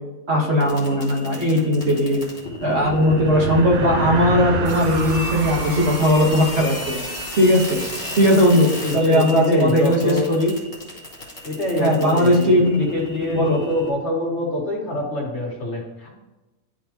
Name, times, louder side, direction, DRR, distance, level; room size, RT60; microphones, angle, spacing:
voice 1, 0.3-2.2 2.6-6.8 7.4-7.6 8.2-10.5 11.8-12.8 13.3-13.6, equal, 50° right, -3 dB, 1.5 m, -18 dB
sound 1, 0.6-13.9, left 3 dB, 25° left, 1.8 m, -33 dB
sound 2, 2.3-8.1, right 5 dB, 85° right, 1.1 m, -29 dB
voice 2, 8.8-10.3 11.4-16.1, left 1 dB, 55° left, -2 dB, 1.7 m, -25 dB
11.0 x 3.7 x 2.9 m, 1.1 s
omnidirectional pair, 1.5 m